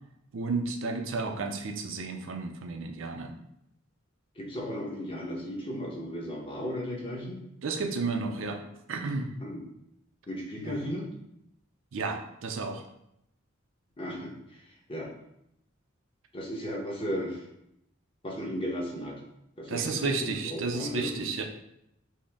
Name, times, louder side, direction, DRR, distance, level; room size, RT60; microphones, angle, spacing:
voice 1, 0.3-3.4 7.6-8.6 8.9-9.3 10.6-10.8 11.9-12.8 19.7-21.4, right 4 dB, 65° right, 4 dB, 0.5 m, -32 dB
voice 2, 4.4-7.4 9.4-9.6 10.3-11.1 14.0-14.6 14.9-15.1 16.3-17.5 18.2-19.1 19.6-21.3, equal, 25° left, -2 dB, 1.0 m, -35 dB
6.1 x 2.1 x 3.5 m, 0.79 s
head